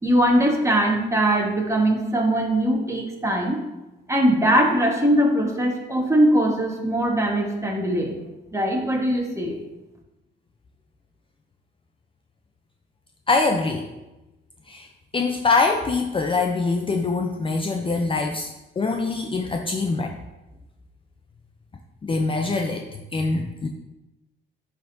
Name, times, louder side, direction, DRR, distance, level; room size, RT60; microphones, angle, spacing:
voice 1, 0.0-3.6 4.1-8.1 8.5-9.6, right 1 dB, 15° right, 0 dB, 1.2 m, -21 dB
voice 2, 13.3-13.9 14.7-14.9 15.1-18.5 18.8-20.2 22.0-22.8 23.1-23.7, left 3 dB, 25° left, 3 dB, 0.5 m, -23 dB
10.0 x 3.6 x 2.6 m, 1.0 s
cardioid pair, 90°, 20 cm